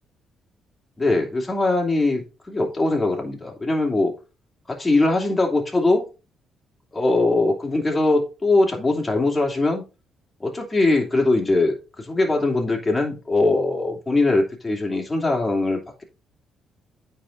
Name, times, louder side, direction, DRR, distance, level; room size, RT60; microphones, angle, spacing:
voice 1, 1.0-4.1 4.7-6.1 6.9-9.8 10.4-16.0, left 2 dB, 20° left, 0 dB, 3.0 m, -21 dB
9.2 x 4.4 x 4.2 m, 0.30 s
cardioid pair, 90°, 0 cm